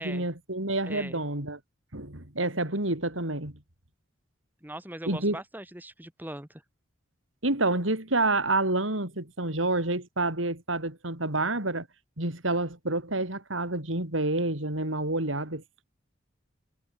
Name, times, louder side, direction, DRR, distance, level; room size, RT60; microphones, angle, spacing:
voice 1, 0.0-1.6 1.9-3.5 5.1-5.4 7.4-11.9 12.2-15.8, right 2 dB, 90° right, 5.3 m, -28 dB
voice 2, 0.8-1.2 4.6-6.6, right 1 dB, 10° right, 2.0 m, -40 dB
head